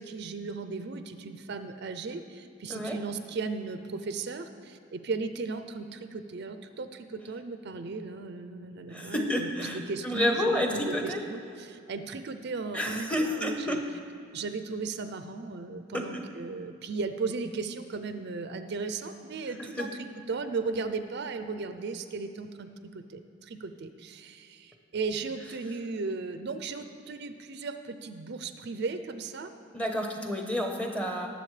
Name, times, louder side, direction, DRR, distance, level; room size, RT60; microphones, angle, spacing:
voice 1, 0.0-13.8 14.3-29.5, right 4 dB, 55° right, 9 dB, 0.5 m, -36 dB
voice 2, 8.9-11.2 12.7-13.8 15.9-16.2 19.6-19.9 29.7-31.3, left 1 dB, 5° left, 2 dB, 0.9 m, -30 dB
19.0 x 7.2 x 3.3 m, 2.5 s
head